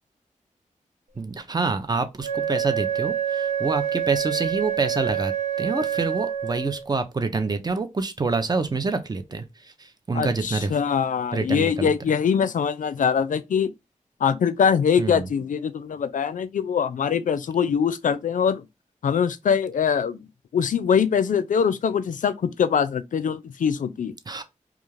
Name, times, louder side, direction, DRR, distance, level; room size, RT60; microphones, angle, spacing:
voice 1, 1.2-5.3 5.6-10.8 11.3-12.0 15.0-15.3 24.3-24.4, right 3 dB, 30° right, 0.5 m, -27 dB
Wind instrument woodwind instrument, 2.2-6.9, right 9 dB, 80° right, 0.6 m, -27 dB
voice 2, 10.1-13.7 14.2-18.7 19.0-20.3 20.5-24.1, left 7 dB, 75° left, 0.4 m, -23 dB
2.4 x 2.3 x 3.1 m
wide cardioid pair, 70°, 13 cm